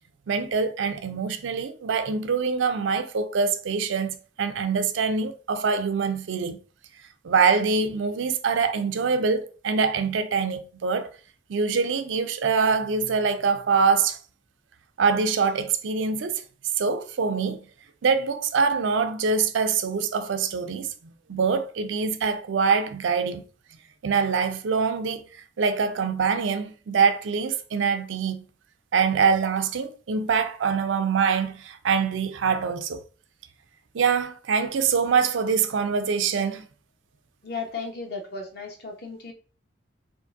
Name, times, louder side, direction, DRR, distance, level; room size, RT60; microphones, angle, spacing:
voice 1, 0.3-6.6 7.2-11.1 11.5-14.2 15.0-16.4 16.8-17.6 18.0-23.4 24.0-25.2 25.6-28.4 28.9-33.0 33.9-36.7, right 5 dB, 85° right, 0.4 m, -24 dB
voice 2, 37.4-39.3, left 4 dB, 55° left, 0.8 m, -35 dB
3.7 x 2.5 x 2.5 m
head